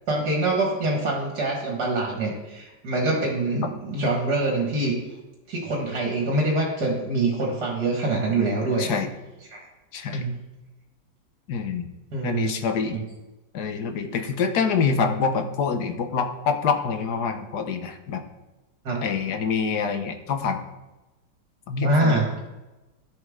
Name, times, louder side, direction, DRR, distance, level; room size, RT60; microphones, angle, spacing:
voice 1, 0.1-5.0 5.5-9.0 9.5-9.6 10.1-10.3 12.1-12.5 12.9-13.0 18.8-19.0 21.8-22.4, right 2 dB, 60° right, -1 dB, 2.2 m, -25 dB
voice 2, 8.8-9.1 9.9-10.3 11.5-11.9 12.2-13.0 13.5-18.2 19.0-20.6 21.7-22.2, left 5 dB, 65° left, 7 dB, 1.3 m, -26 dB
14.0 x 6.6 x 3.7 m, 1.1 s
omnidirectional pair, 2.1 m